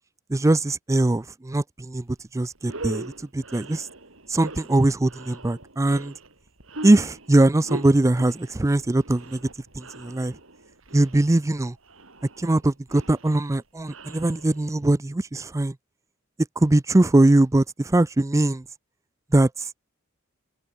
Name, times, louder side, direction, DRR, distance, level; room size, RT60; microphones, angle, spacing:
voice 1, 0.3-2.0 2.3-3.9 4.3-6.1 6.8-9.4 9.8-10.3 10.9-11.7 12.4-15.7 16.6-18.6 19.3-19.8, right 2 dB, 15° right, 0.4 m, -21 dB
sound 1, 2.1-2.2 2.6-14.9, right 2 dB, 70° right, 4.4 m, -41 dB
open air
head